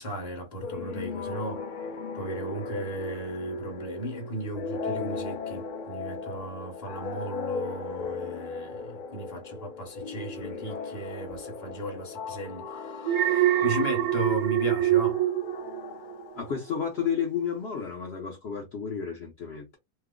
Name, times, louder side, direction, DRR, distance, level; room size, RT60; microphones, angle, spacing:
voice 1, 0.0-1.7 2.1-15.2, right 1 dB, 30° left, 1.0 m, -36 dB
sound 1, 0.6-17.0, left 4 dB, 75° left, 0.4 m, -37 dB
Alarm, 13.0-16.4 16.7-17.1, right 12 dB, 85° right, 1.0 m, -25 dB
voice 2, 16.3-19.8, left 7 dB, 55° left, 0.9 m, -31 dB
2.9 x 2.0 x 3.6 m
omnidirectional pair, 1.5 m